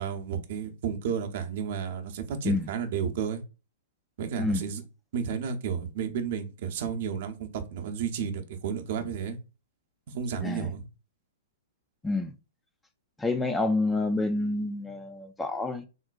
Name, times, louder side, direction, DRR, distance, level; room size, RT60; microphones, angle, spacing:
voice 1, 0.0-3.4 4.2-4.8 5.1-9.4 10.1-10.8, right 7 dB, 55° right, 0.6 m, -32 dB
voice 2, 13.2-15.8, left 2 dB, 10° left, 0.3 m, -28 dB
3.7 x 2.2 x 2.3 m
hypercardioid pair, 115°, 0 cm